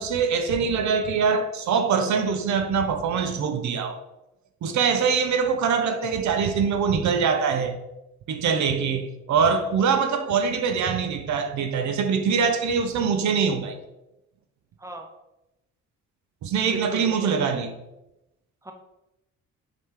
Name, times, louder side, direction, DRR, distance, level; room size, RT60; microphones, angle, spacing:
voice 1, 0.0-4.0 4.6-7.8 8.3-13.8 16.4-17.7, right 6 dB, 70° right, 0.7 m, -23 dB
voice 2, 16.7-17.3 18.6-18.7, equal, 10° right, 0.9 m, -37 dB
5.6 x 4.9 x 3.7 m
cardioid pair, 90°, 30 cm